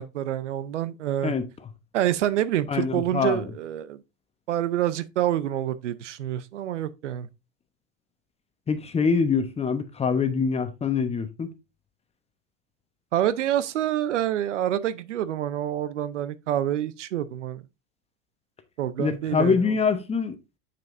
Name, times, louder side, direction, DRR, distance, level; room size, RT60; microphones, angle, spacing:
voice 1, 0.0-1.3 1.9-4.0 4.5-7.3 13.1-17.6 18.8-19.6, right 11 dB, 90° right, 0.6 m, -27 dB
voice 2, 2.7-3.4 8.7-11.5 19.0-20.3, left 5 dB, 15° left, 0.9 m, -24 dB
6.8 x 6.3 x 2.6 m
hypercardioid pair, 105°, 35 cm